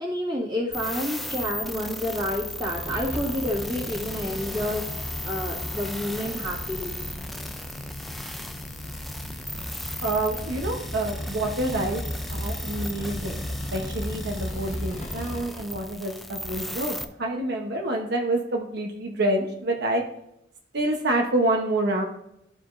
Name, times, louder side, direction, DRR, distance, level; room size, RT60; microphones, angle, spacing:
voice 1, 0.0-6.9, left 1 dB, 25° right, -6 dB, 1.9 m, -29 dB
sound 1, 0.7-17.0, left 1 dB, ahead, 0.4 m, -36 dB
sound 2, 2.6-15.4, left 1 dB, 40° left, 0.8 m, -36 dB
voice 2, 10.0-13.4 13.7-20.0 20.7-22.0, right 1 dB, 60° right, 1 dB, 0.9 m, -27 dB
12.5 x 5.0 x 2.6 m, 0.80 s
head